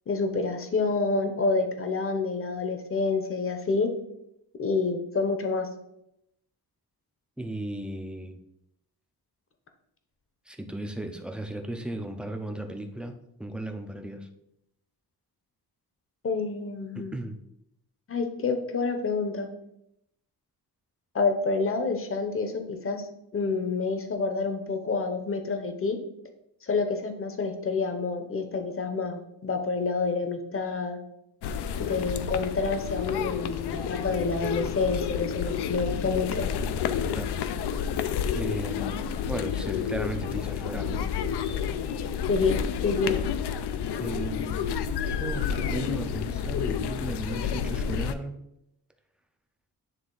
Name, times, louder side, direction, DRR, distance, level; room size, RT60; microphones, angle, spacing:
voice 1, 0.1-3.9 4.6-5.7 16.2-17.2 18.1-19.5 21.1-23.1 23.3-26.0 26.6-31.0 31.8-36.5 42.3-43.2, left 4 dB, 35° left, 6 dB, 0.8 m, -28 dB
voice 2, 7.4-8.4 10.5-14.3 16.9-17.4 37.1-37.3 37.7-37.9 38.3-41.1 44.0-44.8 45.0-48.4, right 1 dB, 5° right, 5 dB, 0.5 m, -36 dB
sound 1, 31.4-48.1, left 7 dB, 85° left, 0.6 m, -30 dB
9.2 x 3.4 x 3.8 m, 0.81 s
wide cardioid pair, 165°, 39 cm